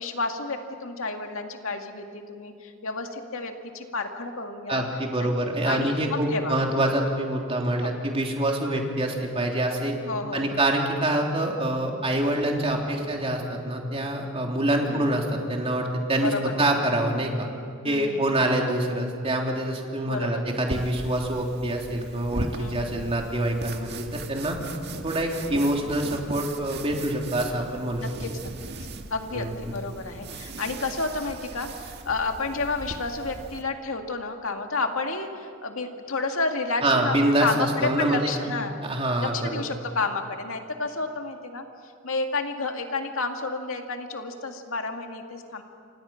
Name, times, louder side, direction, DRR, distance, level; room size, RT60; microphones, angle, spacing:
voice 1, 0.0-4.9 5.2-5.3 5.6-6.6 7.8-8.0 10.0-10.6 14.9-15.1 16.2-16.5 17.8-18.3 20.0-20.4 22.5-23.1 28.2-28.3 29.1-37.1 37.4-38.8 39.2-41.6 42.0-45.6, left 3 dB, 75° left, 4 dB, 2.2 m, -30 dB
voice 2, 4.7-10.0 10.3-16.3 16.6-17.5 17.8-24.6 25.0-28.0 29.3-29.7 36.8-38.4 38.8-39.6, right 1 dB, 30° right, 0 dB, 3.4 m, -26 dB
sound 1, 20.7-33.6, right 2 dB, 55° right, 1.8 m, -38 dB
28.5 x 26.0 x 5.9 m, 2.3 s
head